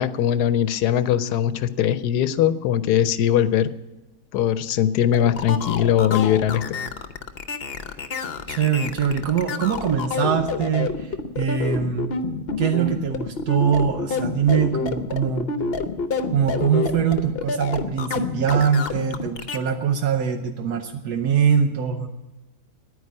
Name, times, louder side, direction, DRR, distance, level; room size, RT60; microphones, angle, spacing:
voice 1, 0.0-3.7 4.3-6.6, left 10 dB, 80° left, 13 dB, 1.2 m, -20 dB
sound 1, 5.1-19.6, left 4 dB, 45° left, 0.9 m, -28 dB
voice 2, 8.5-12.1 12.6-15.5 16.3-22.1, right 7 dB, 80° right, 6 dB, 1.4 m, -23 dB
9.9 x 9.6 x 9.5 m, 1.1 s
omnidirectional pair, 1.7 m